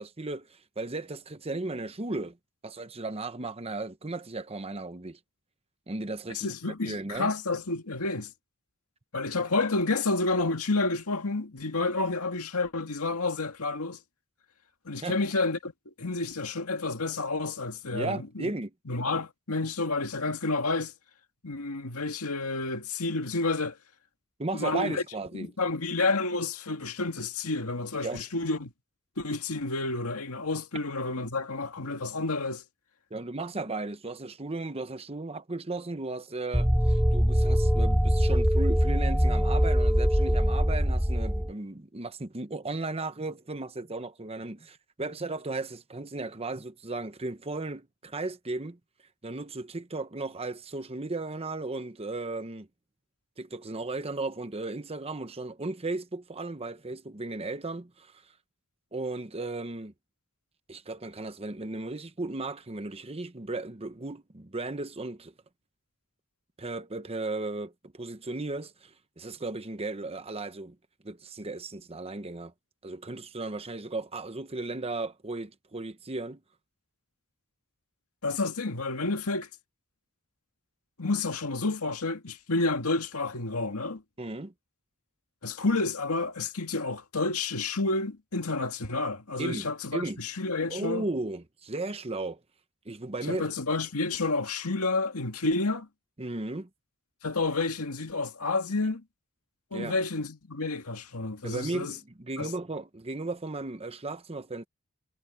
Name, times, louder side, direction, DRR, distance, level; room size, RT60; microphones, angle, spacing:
voice 1, 0.0-2.4 2.6-5.2 5.9-6.5 6.8-7.3 15.0-15.2 17.9-18.7 24.4-25.5 28.0-28.2 33.1-48.8 49.2-52.7 53.4-58.2 58.9-59.9 60.7-65.3 66.6-70.8 71.0-72.5 72.8-76.4 84.2-84.5 89.4-90.2 90.7-92.4 92.8-93.5 96.2-96.7 99.7-100.0 101.4-104.6, right 2 dB, 30° right, 1.0 m, -35 dB
voice 2, 6.3-8.3 9.1-14.0 14.9-15.7 16.0-18.5 18.9-20.9 21.4-23.8 24.5-25.0 25.3-28.7 29.2-32.6 78.2-79.5 81.0-84.0 85.4-91.1 93.3-95.9 97.2-99.0 99.7-101.9 102.4-102.5, left 3 dB, 85° left, 2.0 m, -30 dB
sound 1, 36.5-41.5, equal, 5° right, 0.8 m, -23 dB
head